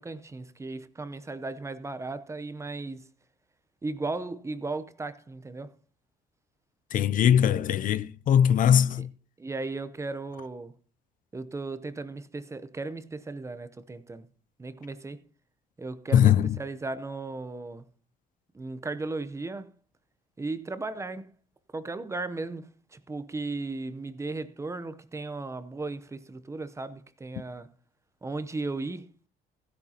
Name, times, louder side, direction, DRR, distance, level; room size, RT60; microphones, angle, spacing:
voice 1, 0.0-3.1 3.8-5.7 9.0-9.1 9.4-10.7 11.3-14.3 14.6-15.3 15.8-17.8 18.5-19.7 20.4-21.3 21.7-27.7 28.2-29.1, right 3 dB, 15° right, 0.7 m, -36 dB
voice 2, 6.9-9.1 16.1-16.6, left 9 dB, 55° left, 0.5 m, -21 dB
15.5 x 10.5 x 2.9 m
cardioid pair, 110°, 17 cm